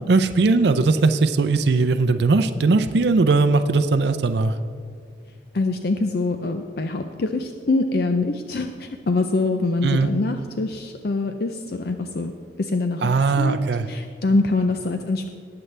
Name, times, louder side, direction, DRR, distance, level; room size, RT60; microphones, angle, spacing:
voice 1, 0.0-4.6 9.8-10.1 13.0-13.9, right 3 dB, 65° right, 10 dB, 0.5 m, -19 dB
voice 2, 5.5-12.3 12.6-13.6 13.9-15.3, left 3 dB, 55° left, 6 dB, 0.5 m, -24 dB
19.0 x 7.8 x 3.3 m, 2.2 s
head